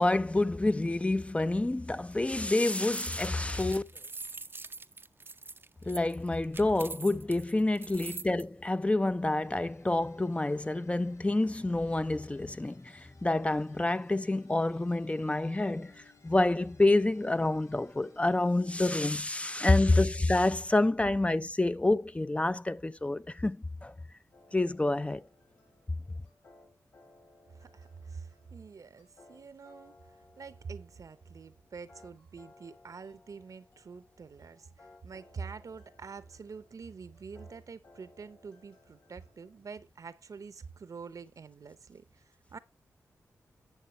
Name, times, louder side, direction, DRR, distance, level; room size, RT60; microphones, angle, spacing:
voice 1, 0.0-3.9 5.8-23.6 23.8-23.9 24.5-25.2, left 2 dB, 20° left, 0.4 m, -28 dB
Handling Keychain on Kitchen Counter, 2.1-8.4, right 3 dB, 35° right, 0.5 m, -44 dB
sound 1, 9.1-19.0, left 3 dB, 55° left, 5.7 m, -59 dB
sound 2, 24.3-39.6, left 2 dB, 90° left, 6.1 m, -61 dB
voice 2, 27.5-30.0 30.4-42.6, right 5 dB, 60° right, 0.8 m, -46 dB
11.0 x 7.2 x 3.1 m
cardioid pair, 50°, 6 cm